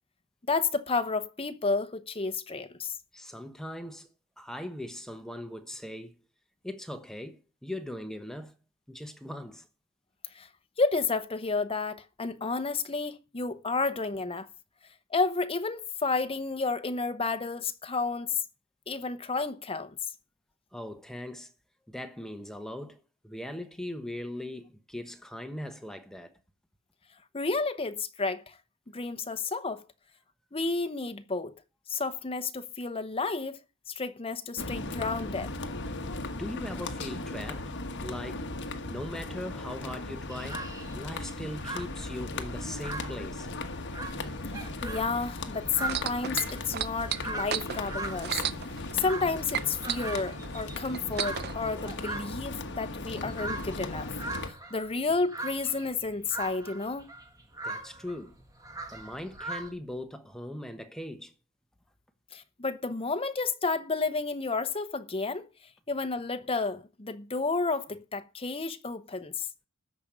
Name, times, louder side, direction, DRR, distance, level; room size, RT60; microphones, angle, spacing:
voice 1, 0.5-2.9 10.3-10.5 10.8-14.5 15.1-18.3 18.9-20.0 27.3-28.6 28.9-29.8 30.5-31.5 31.9-33.6 33.9-35.5 44.6-48.4 48.9-54.1 54.5-57.1 62.3-65.5 65.9-69.5, left 3 dB, 25° left, 0.9 m, -31 dB
voice 2, 3.1-4.1 4.4-6.2 6.6-8.5 8.9-9.7 13.5-13.6 20.7-21.5 21.9-26.4 36.3-37.7 38.0-38.5 38.9-40.7 40.9-43.5 57.6-58.4 58.9-61.3, left 1 dB, ahead, 1.0 m, -40 dB
sound 1, 34.6-54.5, left 2 dB, 55° left, 1.4 m, -37 dB
sound 2, 40.3-59.7, right 2 dB, 15° right, 1.8 m, -41 dB
sound 3, 45.8-49.3 49.5-51.5 52.3-52.4, right 9 dB, 45° right, 0.6 m, -33 dB
13.5 x 5.3 x 8.7 m
head